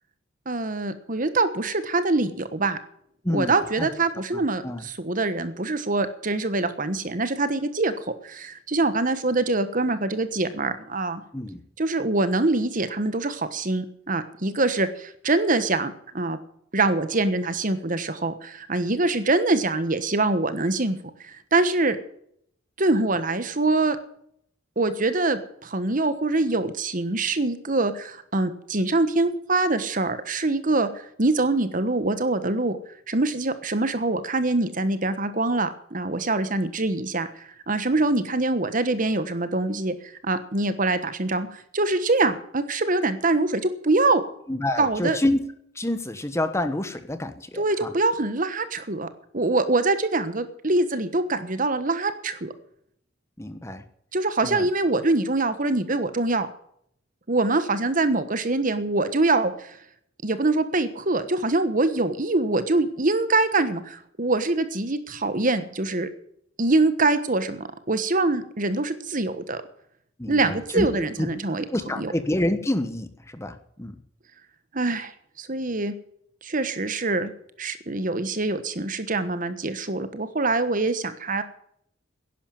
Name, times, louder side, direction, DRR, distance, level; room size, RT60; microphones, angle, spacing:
voice 1, 0.4-2.8 3.3-11.2 11.8-16.4 16.7-21.0 21.2-22.0 22.8-24.0 24.8-32.8 33.1-39.9 40.2-44.2 44.8-45.2 47.5-49.1 49.3-52.5 54.1-56.5 57.3-59.8 60.2-66.1 66.6-69.6 70.3-71.7 72.0-72.1 74.7-75.1 75.4-75.9 76.4-77.3 77.6-81.4, right 2 dB, 45° right, 12 dB, 1.3 m, -24 dB
voice 2, 3.2-3.9 4.6-4.8 11.3-11.6 44.5-45.4 45.7-47.9 53.4-53.8 54.4-54.7 70.2-71.3 71.7-74.0, left 1 dB, 15° left, 9 dB, 1.2 m, -28 dB
11.0 x 11.0 x 9.0 m, 0.70 s
head